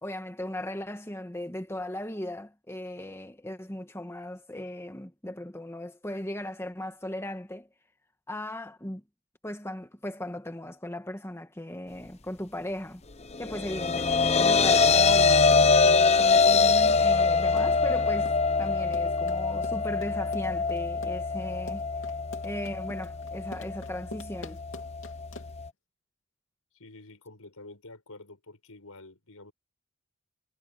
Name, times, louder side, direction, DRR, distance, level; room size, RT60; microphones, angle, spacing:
voice 1, 0.0-7.7 8.3-9.0 9.4-13.0 13.4-18.3 18.6-21.9 22.4-24.6, left 1 dB, 10° left, 1.5 m, -37 dB
sound 1, 13.3-25.7, left 4 dB, 30° left, 0.8 m, -24 dB
Run, 15.3-25.7, left 3 dB, 60° left, 3.1 m, -45 dB
voice 2, 26.7-29.5, left 2 dB, 85° left, 5.5 m, -48 dB
head